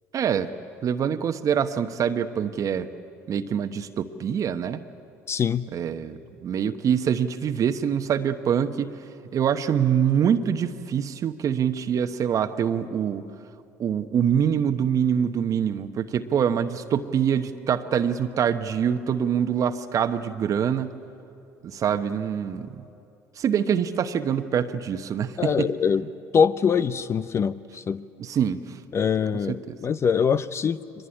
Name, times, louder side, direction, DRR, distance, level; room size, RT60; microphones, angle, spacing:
voice 1, 0.1-0.5 0.8-2.9 3.3-4.8 5.7-9.0 9.3-13.2 13.8-20.9 21.6-22.8 23.4-25.7 28.2-28.8 29.5-29.8, right 8 dB, 50° right, 8 dB, 1.0 m, -25 dB
voice 2, 5.3-5.7 25.4-26.0 26.3-28.0 28.9-30.8, left 6 dB, 40° left, 14 dB, 0.6 m, -23 dB
23.0 x 20.0 x 9.8 m, 2.7 s
hypercardioid pair, 70°, 7 cm